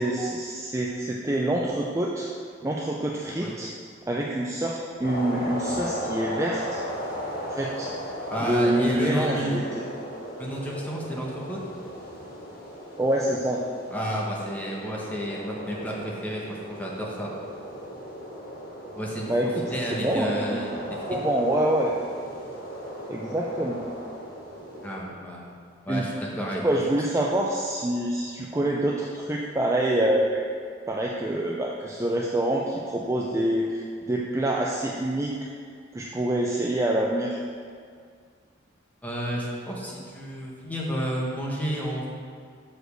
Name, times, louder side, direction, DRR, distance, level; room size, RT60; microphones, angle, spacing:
voice 1, 0.0-2.3 2.6-3.7 4.1-6.8 7.5-7.9 8.4-9.6 13.0-13.6 19.3-19.7 20.0-20.6 20.9-21.9 23.1-23.8 25.9-26.1 26.5-30.4 30.9-35.5 35.9-37.4, right 1 dB, 15° right, -2 dB, 0.4 m, -26 dB
sound 1, 5.0-25.0, equal, 50° left, 1.3 m, -36 dB
voice 2, 8.3-9.6 10.4-11.6 13.9-17.3 18.9-19.3 19.7-20.7 24.8-25.5 25.8-26.6 39.0-42.1, equal, 10° left, -4 dB, 1.2 m, -31 dB
6.2 x 4.9 x 6.7 m, 2.1 s
head